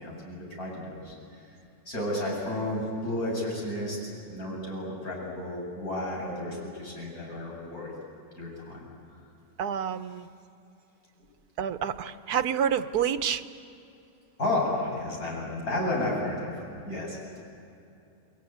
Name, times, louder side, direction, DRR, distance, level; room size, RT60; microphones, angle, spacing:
voice 1, 0.0-1.6 1.9-4.0 4.3-7.9 8.4-8.9 14.4-16.5 16.8-17.4, left 1 dB, 75° left, -3 dB, 8.2 m, -32 dB
voice 2, 9.6-10.3 11.6-13.4, right 8 dB, 90° right, 10 dB, 1.4 m, -28 dB
29.5 x 21.0 x 9.4 m, 2.7 s
omnidirectional pair, 1.6 m